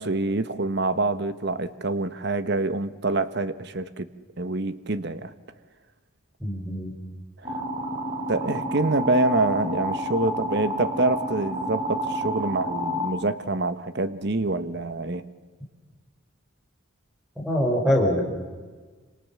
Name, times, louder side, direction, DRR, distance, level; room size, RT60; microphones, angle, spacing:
voice 1, 0.0-4.1 4.4-5.3 7.4-7.6 8.3-15.2, right 2 dB, 50° right, 12 dB, 1.2 m, -26 dB
voice 2, 6.4-6.9 17.4-18.2, equal, 5° right, 0 dB, 5.0 m, -23 dB
sound 1, 7.4-13.1, right 1 dB, 25° right, 3.1 m, -30 dB
28.0 x 26.5 x 7.1 m, 1.4 s
head